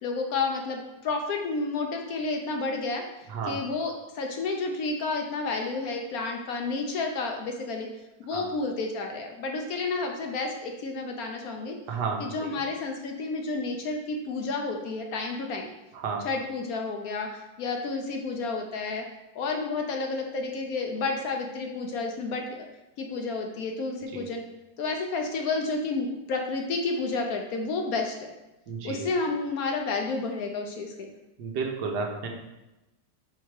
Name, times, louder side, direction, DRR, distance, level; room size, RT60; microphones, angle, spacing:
voice 1, 0.0-3.0 3.5-7.9 8.3-11.8 12.2-15.7 16.2-19.1 19.3-22.7 23.0-24.4 24.8-28.3 28.8-31.1, left 3 dB, 65° left, 3 dB, 1.0 m, -30 dB
voice 2, 11.9-12.5 15.9-16.2 24.1-24.3 28.7-29.1 31.4-32.3, right 5 dB, 75° right, 1 dB, 1.4 m, -32 dB
4.8 x 4.5 x 4.6 m, 0.98 s
omnidirectional pair, 1.8 m